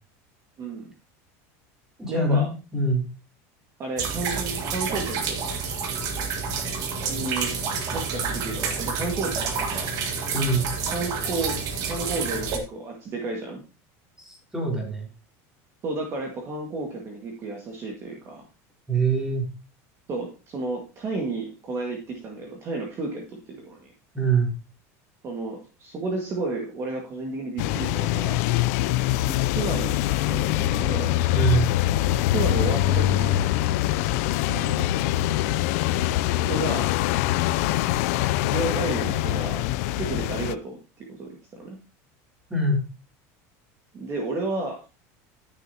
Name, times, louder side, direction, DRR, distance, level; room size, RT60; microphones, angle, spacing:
voice 1, 0.6-0.9 2.1-2.5 3.8-5.4 7.0-7.6 7.9-9.9 10.9-11.6 11.8-13.6 15.8-18.4 20.1-23.9 25.2-28.4 29.3-31.1 32.3-33.5 34.3-34.9 36.5-36.9 38.4-39.6 40.0-40.8 41.1-41.8 43.9-44.8, right 3 dB, 35° right, 0 dB, 1.9 m, -32 dB
voice 2, 2.0-3.0 10.3-10.7 14.3-15.1 18.9-19.4 24.1-24.5 31.3-31.7 42.5-42.8, right 3 dB, 5° right, -1 dB, 3.4 m, -23 dB
sound 1, 4.0-12.6, right 5 dB, 50° right, 1.7 m, -29 dB
sound 2, 27.6-40.5, left 14 dB, 70° left, 0.4 m, -24 dB
12.5 x 6.7 x 2.9 m, 0.31 s
supercardioid pair, 145°, 8 cm